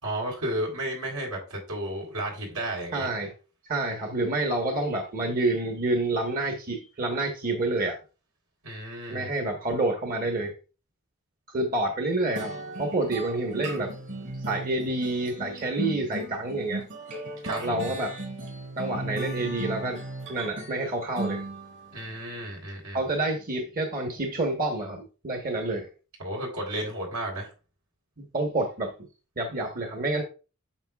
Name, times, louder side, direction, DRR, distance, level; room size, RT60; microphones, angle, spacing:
voice 1, 0.0-3.1 8.6-9.3 17.4-17.8 21.9-23.0 26.2-27.5, right 1 dB, 85° right, 3.6 m, -33 dB
voice 2, 2.9-3.3 3.6-8.0 9.1-10.5 11.5-13.9 14.5-16.8 17.6-18.1 18.8-20.0 20.3-21.4 22.9-25.9 28.3-28.9 29.4-30.2, right 2 dB, 40° right, 1.2 m, -28 dB
sound 1, 12.4-22.0, right 2 dB, 65° right, 3.3 m, -36 dB
8.8 x 6.5 x 2.4 m
head